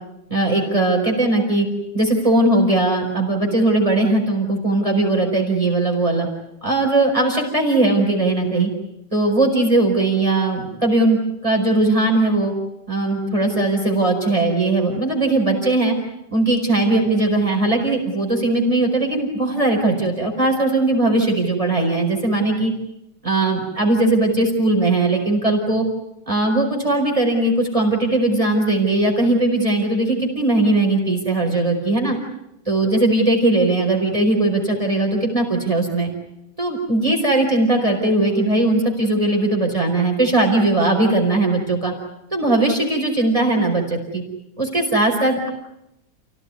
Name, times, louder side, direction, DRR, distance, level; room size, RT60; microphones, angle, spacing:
voice 1, 0.3-1.7 1.9-6.3 6.6-8.7 9.1-11.2 11.4-12.5 12.9-15.9 16.3-22.7 23.2-25.8 26.3-32.2 32.7-36.1 36.6-41.9 42.3-44.2 44.6-45.5, right 2 dB, 15° right, 2 dB, 4.7 m, -19 dB
29.5 x 17.0 x 9.6 m, 0.86 s
omnidirectional pair, 2.1 m